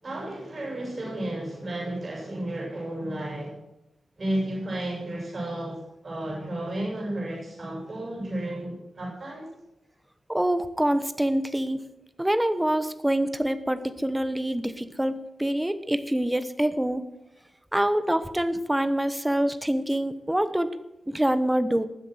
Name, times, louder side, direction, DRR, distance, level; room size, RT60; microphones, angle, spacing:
voice 1, 0.0-3.6 4.2-5.8 6.0-9.5, right 1 dB, 40° right, -2 dB, 7.2 m, -32 dB
voice 2, 10.3-11.8 12.2-17.0 17.7-20.8 21.1-21.8, right 1 dB, 10° right, 12 dB, 1.1 m, -25 dB
19.5 x 7.7 x 6.4 m, 0.89 s
wide cardioid pair, 90°, 0 cm